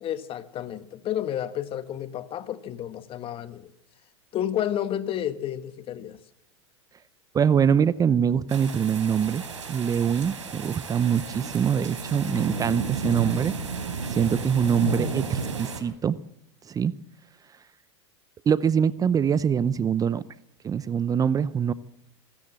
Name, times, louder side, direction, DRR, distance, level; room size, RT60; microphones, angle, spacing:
voice 1, 0.0-3.7 4.3-6.2, left 11 dB, 35° left, 12 dB, 1.6 m, -31 dB
voice 2, 7.3-9.4 9.7-13.5 14.1-16.2 16.7-16.9 18.5-20.2 20.6-21.7, right 7 dB, 25° right, 17 dB, 0.7 m, -23 dB
sound 1, 8.5-15.8, right 4 dB, 90° right, 4.0 m, -33 dB
25.5 x 13.5 x 7.6 m, 0.83 s
hypercardioid pair, 100°, 15 cm